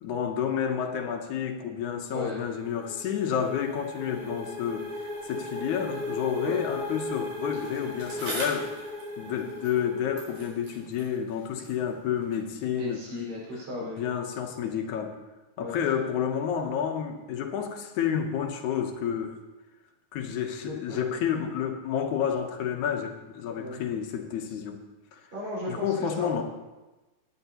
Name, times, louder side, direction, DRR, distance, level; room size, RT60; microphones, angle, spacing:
voice 1, 0.0-8.7 9.2-13.0 13.8-15.1 15.6-19.4 20.1-24.8 25.1-25.2 25.7-26.4, left 8 dB, 75° left, 4 dB, 2.3 m, -30 dB
voice 2, 2.1-2.4 6.4-6.6 12.7-14.0 15.6-15.7 20.6-21.2 23.6-23.8 25.3-26.4, left 1 dB, 70° right, -6 dB, 6.3 m, -36 dB
sound 1, 2.2-10.8, left 1 dB, 45° right, 5.7 m, -38 dB
Bicycle, 7.5-9.9 10.1-12.5 13.3-13.4, right 1 dB, 85° right, 5.5 m, -42 dB
17.0 x 10.5 x 2.9 m, 1.1 s
omnidirectional pair, 3.5 m